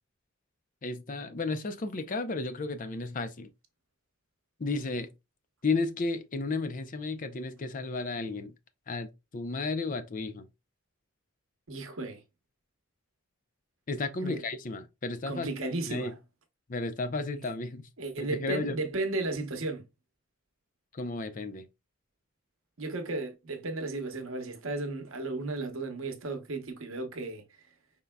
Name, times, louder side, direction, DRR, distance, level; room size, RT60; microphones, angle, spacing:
voice 1, 0.8-3.5 4.6-5.1 5.6-8.5 8.9-10.5 13.9-15.5 15.9-16.1 16.7-17.9 18.2-18.8 20.9-21.7, left 3 dB, 40° left, 0.5 m, -33 dB
voice 2, 11.7-12.2 14.2-14.4 15.3-16.1 18.0-19.8 22.8-27.4, right 2 dB, 65° right, 0.9 m, -34 dB
5.3 x 3.7 x 2.2 m
head